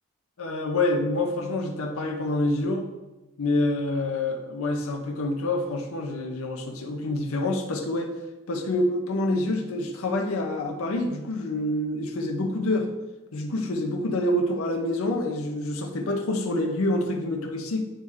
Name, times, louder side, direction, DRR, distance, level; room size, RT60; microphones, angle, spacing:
voice 1, 0.4-2.9 3.4-8.1 8.5-12.9 13.3-17.8, left 1 dB, 70° left, 2 dB, 0.6 m, -27 dB
8.7 x 3.2 x 3.5 m, 1.1 s
head